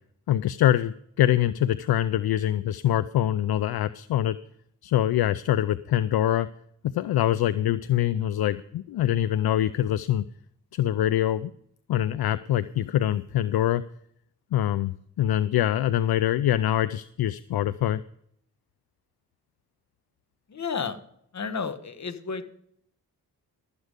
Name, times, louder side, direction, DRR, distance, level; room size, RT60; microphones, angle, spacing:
voice 1, 0.3-4.4 4.8-6.5 6.9-10.3 10.7-11.5 11.9-13.8 14.5-18.0, left 12 dB, 70° left, 14 dB, 0.5 m, -24 dB
voice 2, 20.5-21.0 21.3-22.5, left 5 dB, 45° left, 10 dB, 1.2 m, -32 dB
12.5 x 8.1 x 5.1 m, 0.69 s
cardioid pair, 70°, 39 cm